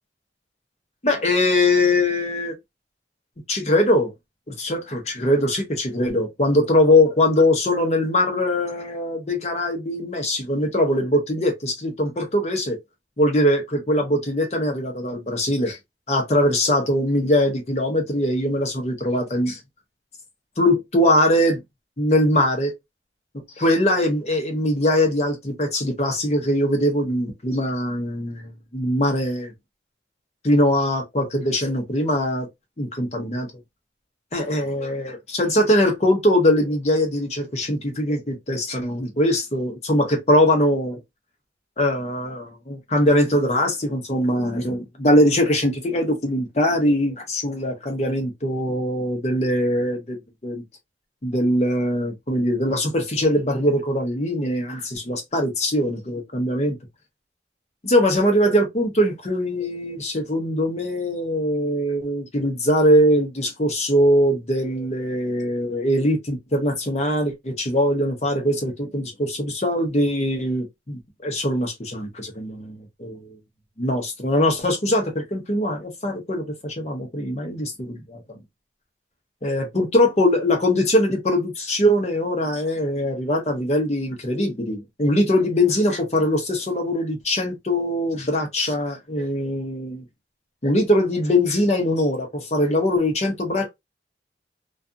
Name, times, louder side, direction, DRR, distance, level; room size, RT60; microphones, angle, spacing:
voice 1, 1.0-2.5 3.5-4.1 4.5-12.8 13.2-15.8 16.1-19.6 20.6-21.6 22.0-22.7 23.6-29.5 30.4-32.5 32.8-33.5 34.3-41.0 41.8-50.6 51.2-56.8 57.8-73.4 73.8-78.4 79.4-90.0 90.6-93.7, left 1 dB, 35° left, 0.7 m, -22 dB
2.4 x 2.3 x 2.6 m
head